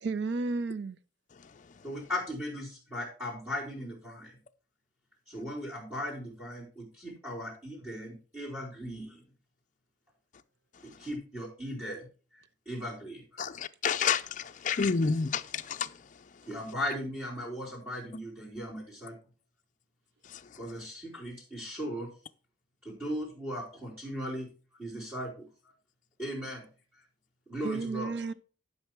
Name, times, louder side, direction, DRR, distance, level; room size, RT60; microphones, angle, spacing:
voice 1, 0.0-1.0 27.6-28.3, right 3 dB, 60° right, 0.5 m, -32 dB
voice 2, 1.8-4.4 5.3-9.2 10.8-12.1 12.3-13.2 16.5-19.2 20.6-22.1 22.8-24.5 24.8-25.5 26.2-26.7 26.9-27.0 27.5-28.2, equal, 10° right, 3.6 m, -38 dB
voice 3, 13.4-15.9 20.3-20.4, left 5 dB, 40° left, 0.4 m, -29 dB
11.5 x 5.6 x 4.5 m
head